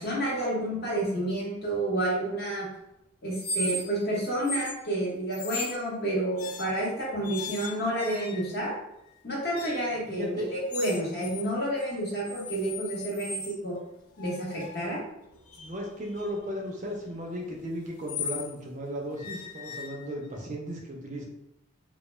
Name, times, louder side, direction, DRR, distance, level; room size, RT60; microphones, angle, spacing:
voice 1, 0.0-2.7 3.2-8.7 9.2-13.7 14.2-15.0, right 1 dB, 50° left, -5 dB, 0.8 m, -30 dB
sound 1, 3.3-4.1 4.4-4.8 5.3-5.8 6.4-6.9 7.2-8.6 9.5-9.9 10.7-11.5 11.8-13.6 14.2-18.5 19.2-20.4, left 3 dB, 85° left, 0.4 m, -38 dB
voice 2, 10.1-10.5 15.6-21.3, equal, 35° right, 0 dB, 0.3 m, -35 dB
2.1 x 2.1 x 3.0 m, 0.86 s
head